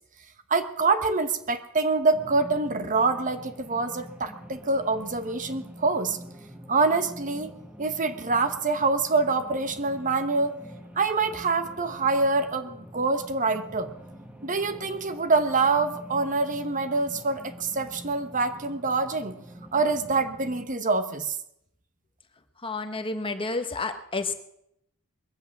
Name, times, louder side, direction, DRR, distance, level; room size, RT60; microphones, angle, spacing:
voice 1, 0.5-6.2 6.7-7.5 7.8-10.5 11.0-13.9 14.4-19.3 19.7-21.4, right 3 dB, 35° right, 9 dB, 1.1 m, -25 dB
sound 1, 2.1-20.6, equal, 5° right, 1.5 m, -46 dB
voice 2, 22.6-24.3, left 3 dB, 25° left, 7 dB, 1.1 m, -30 dB
21.5 x 8.3 x 7.2 m, 0.77 s
head